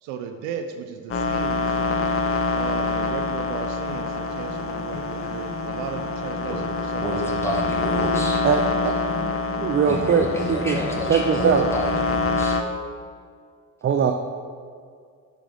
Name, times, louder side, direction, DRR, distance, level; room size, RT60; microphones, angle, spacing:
voice 1, 0.0-1.8 2.5-7.6, right 7 dB, 70° right, 6 dB, 0.6 m, -36 dB
sound 1, 1.1-12.6, left 3 dB, 30° left, 0.7 m, -26 dB
sound 2, 1.4-7.8 8.0-12.0, left 3 dB, 65° left, 1.1 m, -38 dB
voice 2, 7.0-8.4 9.9-12.6, equal, 5° left, -2 dB, 1.8 m, -29 dB
voice 3, 8.4-9.0 9.6-10.8 11.0-11.7 13.8-14.1, right 7 dB, 30° right, 5 dB, 0.4 m, -21 dB
10.0 x 3.4 x 3.8 m, 2.1 s
hypercardioid pair, 50°, 46 cm